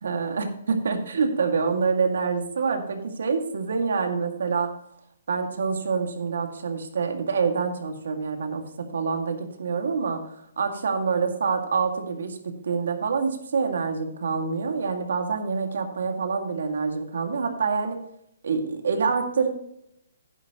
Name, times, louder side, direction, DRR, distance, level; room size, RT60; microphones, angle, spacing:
voice 1, 0.0-4.7 5.3-18.0 18.4-19.5, right 5 dB, 75° right, 5 dB, 2.1 m, -26 dB
11.5 x 10.5 x 3.0 m, 0.73 s
hypercardioid pair, 165°, 0 cm